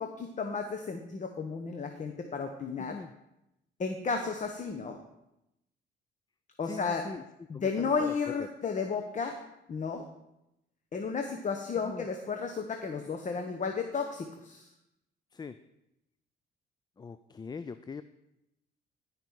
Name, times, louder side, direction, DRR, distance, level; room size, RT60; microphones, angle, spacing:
voice 1, 0.0-3.0 3.8-5.0 6.6-7.1 7.5-9.4 9.7-10.0 10.9-14.7, left 5 dB, 40° left, 5 dB, 0.9 m, -33 dB
voice 2, 2.8-3.1 6.6-7.2 7.5-8.1 8.4-8.5 11.8-12.1 15.3-15.5 17.0-18.0, left 4 dB, 20° left, 12 dB, 0.4 m, -42 dB
15.0 x 5.2 x 4.6 m, 0.87 s
cardioid pair, 90°, 20 cm